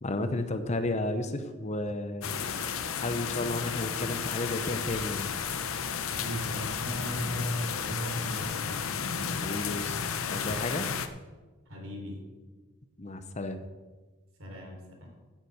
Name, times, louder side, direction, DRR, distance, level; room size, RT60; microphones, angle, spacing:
voice 1, 0.0-2.2 3.0-5.3 9.4-10.9 13.0-13.6, left 2 dB, 30° left, 9 dB, 0.8 m, -32 dB
sound 1, 2.2-11.1, left 6 dB, 70° left, 0.8 m, -33 dB
voice 2, 6.1-8.8 11.7-12.2 14.4-15.1, equal, 70° right, 1 dB, 3.6 m, -37 dB
10.0 x 7.3 x 8.1 m, 1.3 s
head